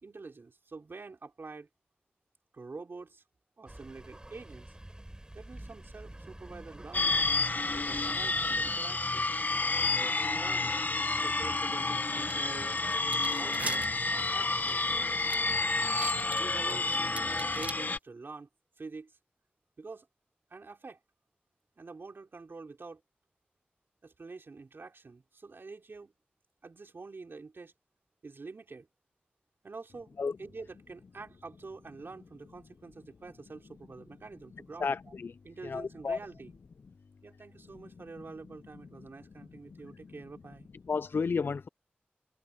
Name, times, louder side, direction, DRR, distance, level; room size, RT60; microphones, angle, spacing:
voice 1, 0.0-1.7 2.5-3.2 3.6-4.7 5.3-7.2 7.7-9.4 10.0-10.8 11.2-12.8 13.4-14.8 16.3-16.9 17.4-18.5 18.8-19.2 19.8-20.1 20.5-21.0 21.8-23.0 24.0-26.1 26.6-27.7 28.2-28.9 29.6-35.1 35.4-36.6 37.2-40.7, right 3 dB, 70° right, 4.0 m, -47 dB
sound 1, 3.7-8.7, right 1 dB, 20° right, 4.4 m, -48 dB
sound 2, 6.9-18.0, left 3 dB, 50° left, 1.0 m, -30 dB
sound 3, 12.3-12.4 12.8-17.7, right 2 dB, 35° right, 1.2 m, -41 dB
voice 2, 34.8-35.3 35.6-36.2 40.9-41.7, left 5 dB, 65° left, 0.3 m, -31 dB
cardioid pair, 45°, 4 cm